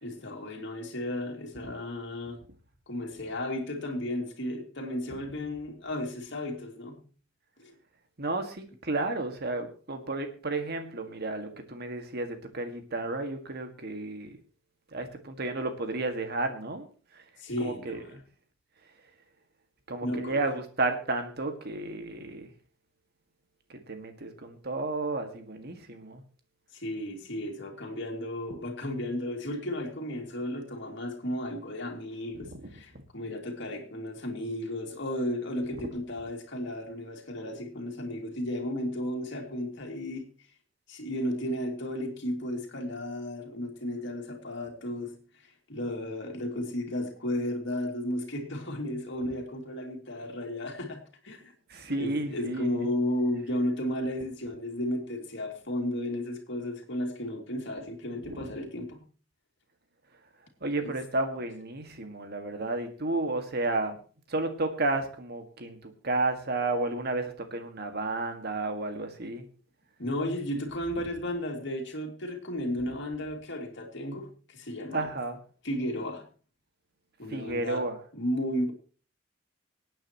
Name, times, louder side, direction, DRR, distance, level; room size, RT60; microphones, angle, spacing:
voice 1, 0.0-2.4 2.9-7.0 7.6-7.7 17.4-18.2 20.0-20.4 26.7-40.3 40.9-45.2 45.7-51.5 51.9-59.0 60.8-61.0 70.0-75.1 75.6-76.3 77.2-77.9 78.1-78.7, left 1 dB, 60° left, 2.5 m, -34 dB
voice 2, 8.2-14.4 14.9-16.9 17.6-18.2 19.9-22.5 23.7-26.2 32.3-32.7 51.7-52.9 58.3-58.4 60.6-64.0 64.3-69.5 74.9-75.4 77.3-78.0, right 2 dB, 55° right, 1.8 m, -32 dB
25.0 x 9.0 x 3.0 m
head